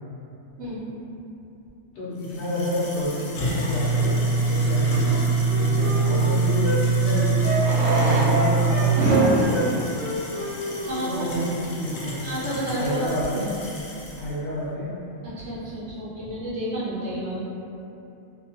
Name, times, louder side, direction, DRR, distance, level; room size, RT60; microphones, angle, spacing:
voice 1, 1.9-4.2 4.5-5.2 5.6-9.9 11.0-12.3 12.7-13.5 14.1-14.9, equal, 65° left, -9 dB, 0.9 m, -29 dB
sound 1, 2.2-14.3, right 4 dB, 90° left, 1.0 m, -25 dB
Fireworks, 4.0-4.1 6.3-6.4 7.5-11.2 12.0-12.1 12.3-12.4 12.6-12.7 13.2-13.4, equal, 85° right, 1.1 m, -27 dB
Wind instrument woodwind instrument, 5.0-9.7 9.9-11.0 11.3-11.5, right 2 dB, 5° right, 0.6 m, -28 dB
voice 2, 10.9-11.3 12.2-13.1 15.2-17.4, right 1 dB, 60° right, -9 dB, 0.9 m, -30 dB
2.6 x 2.1 x 2.8 m, 2.8 s
omnidirectional pair, 1.4 m